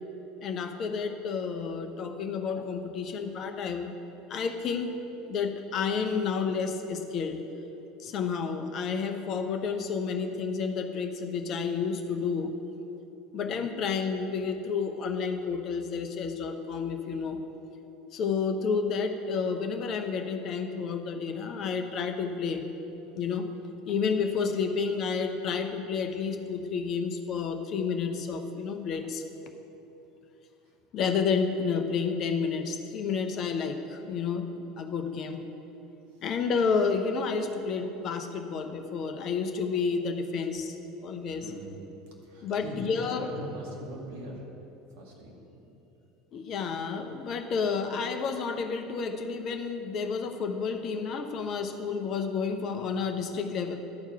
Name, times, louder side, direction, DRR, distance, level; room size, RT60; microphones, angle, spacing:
voice 1, 0.4-3.9 4.3-5.0 5.3-7.4 8.0-12.5 13.3-17.4 18.1-22.7 23.2-23.5 23.8-29.2 30.9-34.5 34.8-35.4 36.2-40.8 41.0-41.5 42.4-43.3 46.3-53.8, left 5 dB, 45° left, 6 dB, 0.8 m, -30 dB
voice 2, 41.1-41.8 42.2-44.5 44.9-45.6, equal, 60° right, -1 dB, 1.8 m, -42 dB
11.5 x 4.6 x 6.8 m, 3.0 s
figure-of-eight pair, 70°, 0 cm